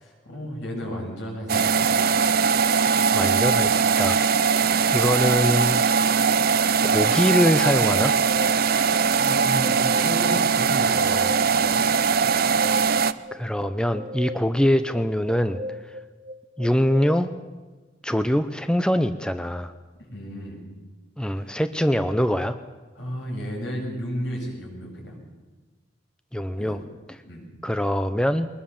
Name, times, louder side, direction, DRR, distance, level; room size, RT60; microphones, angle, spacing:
voice 1, 0.0-1.9 4.6-4.8 8.7-11.8 20.0-20.6 21.4-21.5 23.0-25.2 26.6-26.8 27.2-27.5, equal, 70° left, 0 dB, 7.7 m, -33 dB
sound 1, 1.5-13.1, right 6 dB, 55° right, 0.7 m, -21 dB
voice 2, 3.1-4.2 4.5-5.8 6.8-8.1 13.3-15.6 16.6-17.3 18.0-19.7 21.2-22.6 26.3-26.8 27.6-28.5, equal, 5° left, 10 dB, 0.7 m, -23 dB
sound 2, 7.0-17.1, left 1 dB, 30° right, 1.2 m, -38 dB
23.0 x 20.5 x 7.2 m, 1.3 s
head